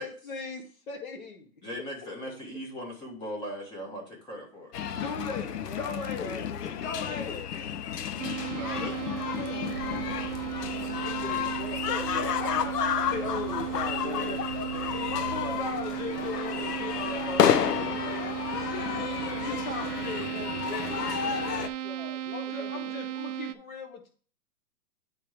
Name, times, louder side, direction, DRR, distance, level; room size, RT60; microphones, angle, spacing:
voice 1, 0.0-1.5 4.9-7.4 11.8-14.4 15.1-18.4 19.4-20.5 22.3-24.1, left 4 dB, 60° left, 3 dB, 2.2 m, -37 dB
voice 2, 1.6-4.7 8.5-8.9, equal, 10° left, 1 dB, 0.8 m, -38 dB
sound 1, 4.7-21.7, left 8 dB, 85° left, 0.8 m, -31 dB
voice 3, 5.6-6.5 10.8-11.8 13.9-14.5 14.7-15.8 16.1-17.5 18.6-23.0, left 3 dB, 25° left, 2 dB, 1.7 m, -44 dB
sound 2, 8.2-23.5, right 12 dB, 55° right, 0.6 m, -35 dB
sound 3, 9.7-17.8, right 8 dB, 70° right, 0.9 m, -49 dB
8.6 x 3.7 x 4.7 m, 0.41 s
hypercardioid pair, 160°, 46 cm